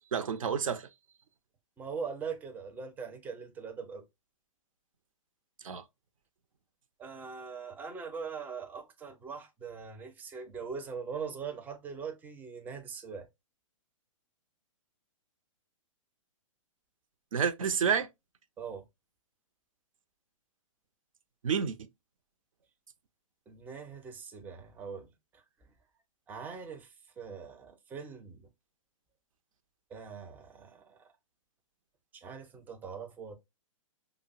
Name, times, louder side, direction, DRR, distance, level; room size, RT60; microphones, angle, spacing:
voice 1, 0.1-0.9 5.6-5.8 17.3-18.1 21.4-21.9, right 7 dB, 75° right, 0.5 m, -29 dB
voice 2, 1.8-4.0 7.0-13.3 18.6-18.8 23.5-25.4 26.3-28.5 29.9-31.1 32.1-33.4, right 6 dB, 10° right, 0.4 m, -42 dB
4.9 x 2.0 x 2.3 m
figure-of-eight pair, 120°, 17 cm